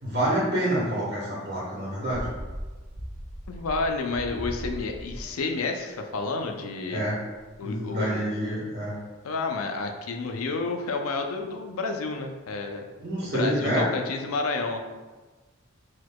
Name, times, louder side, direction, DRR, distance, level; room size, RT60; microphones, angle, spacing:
voice 1, 0.0-2.3 6.9-7.2 7.6-8.9 13.0-13.8, right 1 dB, 50° right, -8 dB, 1.2 m, -27 dB
sound 1, 2.1-6.9 7.4-7.5, equal, 30° right, 0.5 m, -39 dB
voice 2, 3.5-7.0 7.6-8.2 9.2-12.8 13.2-14.8, left 3 dB, 85° left, 4 dB, 0.5 m, -30 dB
4.5 x 4.3 x 2.2 m, 1.3 s
head